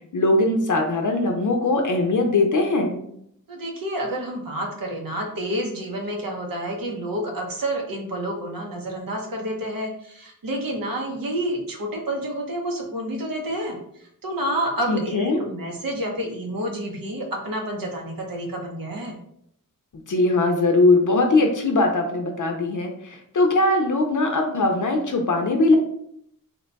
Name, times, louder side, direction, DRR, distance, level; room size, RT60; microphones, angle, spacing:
voice 1, 0.1-3.0 14.9-15.4 20.1-25.8, left 2 dB, 65° left, 3 dB, 0.5 m, -20 dB
voice 2, 3.5-19.2, right 1 dB, 80° right, 0 dB, 0.8 m, -29 dB
2.8 x 2.2 x 3.9 m, 0.71 s
wide cardioid pair, 85°, 34 cm